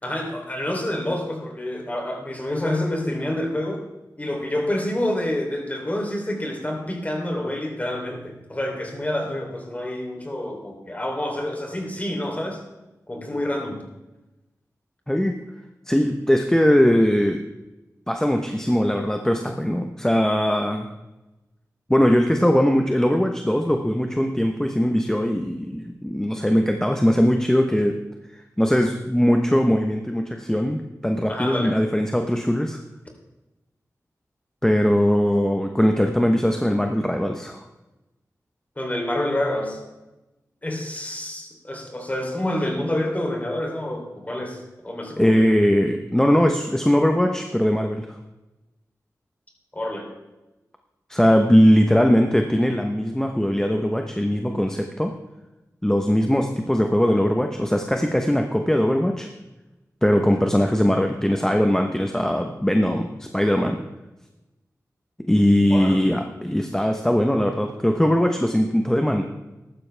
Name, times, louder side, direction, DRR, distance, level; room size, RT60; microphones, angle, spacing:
voice 1, 0.0-3.8 4.2-12.6 13.1-13.8 31.3-31.8 38.8-39.8 40.6-45.5 49.7-50.1 60.3-60.4 65.7-66.1, left 1 dB, 25° left, 1 dB, 3.4 m, -28 dB
voice 2, 15.1-15.4 15.9-17.4 18.1-20.9 21.9-28.0 28.3-32.8 34.6-37.6 45.2-48.2 51.1-55.1 55.8-59.3 60.0-63.8 65.3-69.2, equal, 10° left, 4 dB, 1.0 m, -20 dB
14.5 x 12.0 x 3.4 m, 1.0 s
wide cardioid pair, 70°, 6 cm